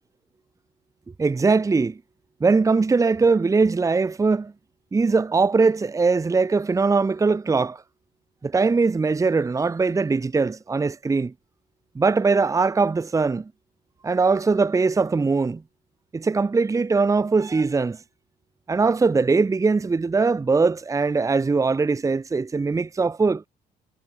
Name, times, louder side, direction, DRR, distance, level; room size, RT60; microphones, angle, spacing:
voice 1, 1.2-2.0 2.4-4.5 4.9-7.8 8.4-11.3 11.9-13.5 14.0-15.6 16.1-18.0 18.7-23.5, right 4 dB, 20° right, 1.1 m, -21 dB
cardioid pair, 110°, 17 cm